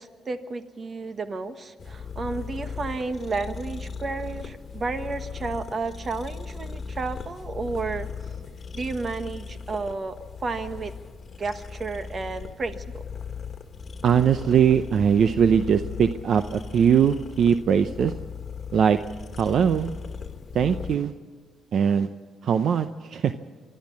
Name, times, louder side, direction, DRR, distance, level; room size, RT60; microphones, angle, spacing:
voice 1, 0.0-8.1 8.7-10.2 10.4-10.9 11.4-13.0, right 3 dB, 40° right, 10 dB, 1.4 m, -32 dB
sound 1, 1.8-21.0, left 5 dB, 40° left, 1.7 m, -38 dB
voice 2, 14.0-18.1 18.7-19.0 19.4-19.9 20.5-21.1 21.7-22.1 22.4-22.9 23.1-23.3, right 7 dB, 60° right, 10 dB, 0.7 m, -20 dB
24.5 x 12.5 x 8.5 m, 1.5 s
cardioid pair, 90°, 0 cm